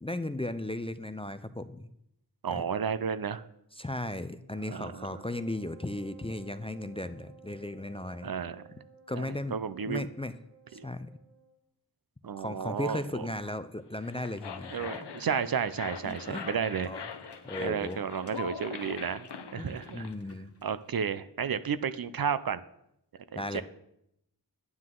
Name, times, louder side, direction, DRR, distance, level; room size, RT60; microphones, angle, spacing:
voice 1, 0.0-1.9 2.5-2.6 3.8-8.3 9.1-9.5 9.8-10.3 10.7-11.1 12.4-15.0 16.3-16.5 16.9-17.1 17.4-18.0 19.6-20.5 23.3-23.6, left 1 dB, 15° left, 11 dB, 0.4 m, -36 dB
voice 2, 2.4-3.4 4.6-5.2 8.2-8.6 9.1-10.1 10.8-10.9 12.2-13.3 14.7-16.9 17.6-19.3 19.5-20.1 20.6-22.6 23.3-23.6, right 7 dB, 60° right, 13 dB, 0.5 m, -32 dB
Wind instrument woodwind instrument, 4.9-11.6, right 7 dB, 85° right, 2.1 m, -56 dB
sound 1, 13.9-20.1, left 6 dB, 85° left, 0.8 m, -42 dB
sound 2, 14.7-21.0, left 2 dB, 35° left, 1.5 m, -55 dB
9.6 x 9.6 x 3.8 m, 0.79 s
wide cardioid pair, 65°, 40 cm